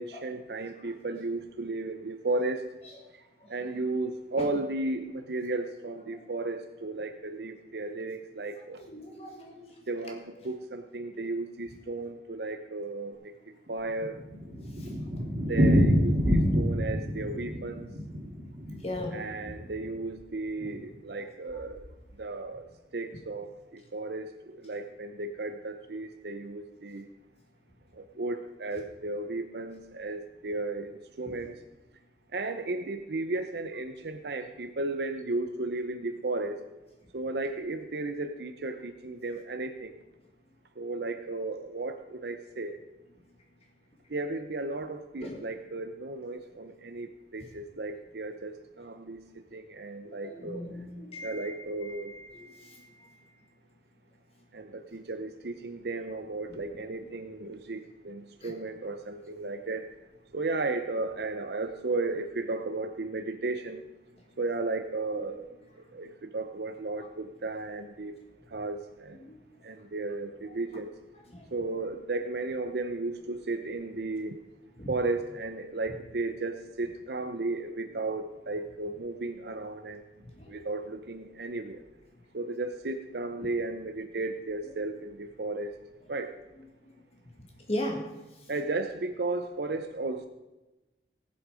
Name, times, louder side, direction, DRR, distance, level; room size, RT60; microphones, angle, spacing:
voice 1, 0.0-2.7 3.5-8.8 9.9-13.3 13.7-14.2 15.5-17.9 19.1-21.8 22.2-22.7 22.9-27.1 27.9-31.6 32.3-36.6 37.1-40.0 40.8-42.8 44.1-49.2 49.5-50.6 51.2-52.1 54.5-59.9 60.3-63.8 64.4-65.5 65.9-68.2 68.5-69.2 69.6-70.9 71.5-74.4 74.9-80.0 80.5-81.8 82.3-85.7 86.1-86.3 88.5-90.3, right 2 dB, 65° right, 7 dB, 0.7 m, -34 dB
voice 2, 8.9-9.6 18.8-19.2 45.2-45.4 50.0-51.5 51.8-52.8 58.4-58.5 69.3-69.4 71.3-71.4 74.8-74.9 80.4-80.6 87.7-88.0, left 1 dB, 35° left, 1 dB, 1.8 m, -37 dB
Thunder, 13.7-19.9 20.2-20.3 20.6-20.7 20.9-21.0 21.6-21.9, equal, 45° right, 2.4 m, -27 dB
17.5 x 7.8 x 5.0 m, 1.1 s
head